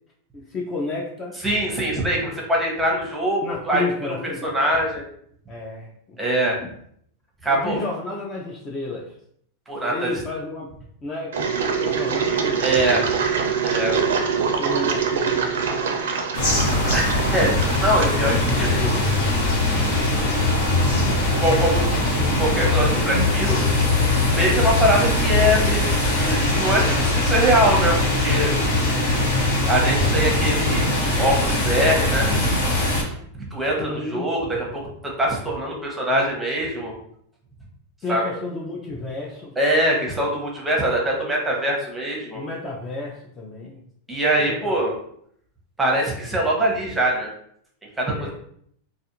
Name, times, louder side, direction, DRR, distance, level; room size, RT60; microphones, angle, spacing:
voice 1, 0.3-1.4 3.4-4.7 5.5-6.2 6.6-6.7 7.5-9.1 9.9-10.7 11.0-13.2 14.5-17.0 18.0-18.4 33.8-34.3 38.0-39.6 42.3-43.8 44.3-44.9 48.1-48.3, left 3 dB, 25° left, -2 dB, 0.4 m, -32 dB
voice 2, 1.4-4.1 4.4-5.0 6.2-6.6 7.4-7.8 9.7-10.1 12.6-13.1 13.6-14.0 16.9-18.9 20.8-20.9 21.4-21.9 22.4-23.6 24.3-28.5 29.7-32.3 33.3-36.9 38.1-38.2 39.6-42.4 44.1-44.9 45.8-47.3 48.0-48.3, right 1 dB, 5° right, -2 dB, 0.7 m, -23 dB
Engine, 11.3-19.1, right 6 dB, 90° right, 0.4 m, -24 dB
sound 1, 16.3-33.0, left 2 dB, 65° left, 1.1 m, -21 dB
2.4 x 2.4 x 2.9 m, 0.67 s
supercardioid pair, 140°, 0 cm